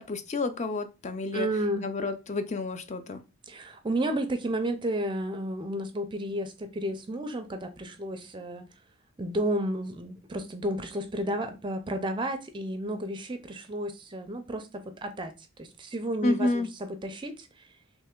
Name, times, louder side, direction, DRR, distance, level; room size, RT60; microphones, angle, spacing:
voice 1, 0.0-1.5 1.8-3.2 16.2-16.7, left 2 dB, 35° left, 0.4 m, -30 dB
voice 2, 1.3-1.9 3.5-8.7 9.2-15.3 15.6-17.7, right 1 dB, 20° right, 0.4 m, -32 dB
3.3 x 3.0 x 3.6 m
head